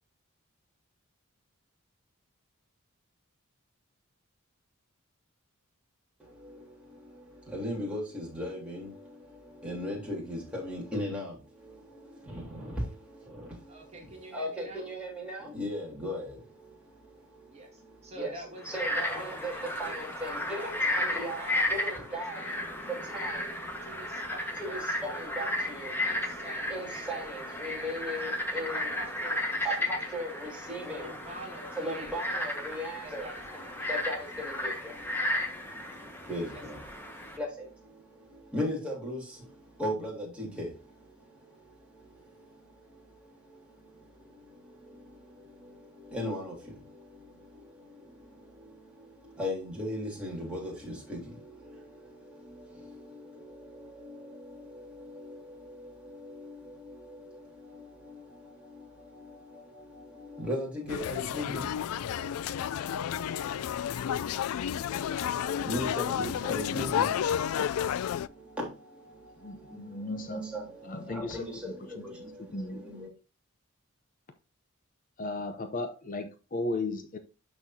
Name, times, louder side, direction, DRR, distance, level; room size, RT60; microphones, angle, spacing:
voice 1, 6.2-21.4 21.7-24.2 24.6-26.4 26.7-28.9 29.6-31.2 31.8-33.3 33.8-73.1, equal, 5° right, 3.4 m, -39 dB
voice 2, 13.7-14.9 17.5-20.7 21.0-21.7 22.3-22.6 23.8-25.3 26.0-28.0 28.7-30.2 30.9-32.4 33.0-33.9 36.5-36.6, right 1 dB, 30° right, 1.8 m, -47 dB
Frog, 18.6-37.4, left 1 dB, 10° left, 1.4 m, -34 dB
sound 1, 60.9-68.3, left 9 dB, 75° left, 0.3 m, -31 dB
voice 3, 69.4-70.4 70.8-71.9 72.4-72.8 75.2-77.2, left 2 dB, 40° left, 0.7 m, -36 dB
12.5 x 4.3 x 2.7 m
head